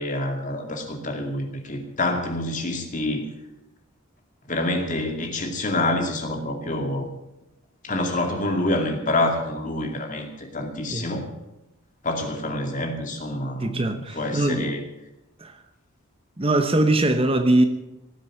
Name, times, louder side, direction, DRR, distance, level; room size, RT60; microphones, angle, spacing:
voice 1, 0.0-3.3 4.5-7.1 7.8-11.3 12.0-14.8, left 1 dB, 35° left, 2.4 m, -27 dB
voice 2, 13.6-14.7 15.4-15.6 16.4-17.6, right 1 dB, 25° right, 0.9 m, -21 dB
18.0 x 7.8 x 8.8 m
head